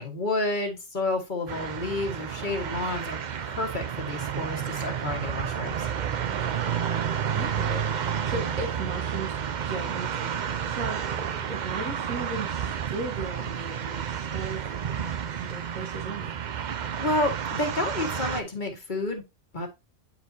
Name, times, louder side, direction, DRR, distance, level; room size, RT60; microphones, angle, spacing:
voice 1, 0.0-5.9 17.0-19.2 19.5-19.7, left 2 dB, 35° left, 1.6 m, -30 dB
sound 1, 1.5-18.4, right 8 dB, 55° right, 0.5 m, -31 dB
voice 2, 6.3-6.8 7.3-14.6 14.9-16.4, right 3 dB, 75° right, 1.7 m, -37 dB
9.5 x 4.3 x 2.7 m
omnidirectional pair, 1.4 m